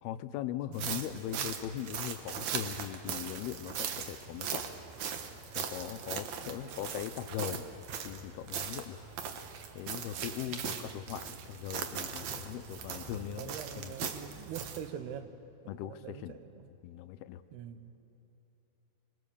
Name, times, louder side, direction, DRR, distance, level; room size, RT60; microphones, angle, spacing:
voice 1, 0.0-4.6 5.5-7.7 8.0-9.0 9.7-13.9 15.7-16.4 16.8-17.4, left 12 dB, 85° left, 12 dB, 2.6 m, -40 dB
sound 1, 0.7-14.9, right 7 dB, 65° right, 1.9 m, -39 dB
voice 2, 0.7-1.5 6.4-6.9 10.5-11.1 13.1-15.3 15.8-16.7 17.5-17.9, right 9 dB, 90° right, 10 dB, 3.1 m, -45 dB
26.0 x 22.5 x 6.9 m, 2.9 s
omnidirectional pair, 4.5 m